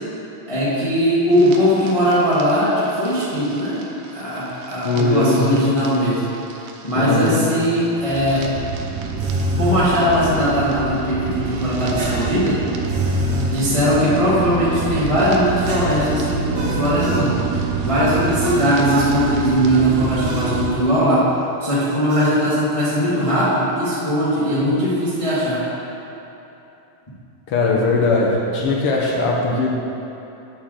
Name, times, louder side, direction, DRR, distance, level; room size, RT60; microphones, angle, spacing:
voice 1, 0.5-3.8 4.1-6.3 6.8-8.4 9.6-12.6 13.5-17.4 17.8-21.3 21.6-25.6, equal, 55° left, -10 dB, 0.3 m, -19 dB
sound 1, 1.3-20.7, right 5 dB, 85° right, 2.1 m, -27 dB
voice 2, 4.8-5.6 6.9-7.5 27.5-29.7, left 2 dB, 75° left, -2 dB, 1.3 m, -19 dB
sound 2, 9.2-9.8 12.0-13.5 15.6-17.3 18.4-19.1 20.2-20.5 22.1-22.4, equal, 60° right, 1.7 m, -26 dB
8.5 x 3.7 x 6.4 m, 3.0 s
omnidirectional pair, 3.5 m